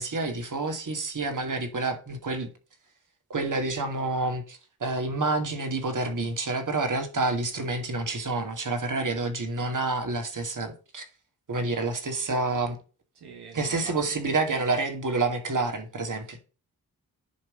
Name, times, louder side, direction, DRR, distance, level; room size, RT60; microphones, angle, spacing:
voice 1, 0.0-2.5 3.3-11.0 11.5-12.8 13.5-16.4, right 3 dB, 50° right, 2.5 m, -28 dB
voice 2, 13.1-14.2 16.3-16.4, right 5 dB, 80° right, 1.7 m, -46 dB
10.5 x 3.5 x 6.5 m
supercardioid pair, 45°, 39 cm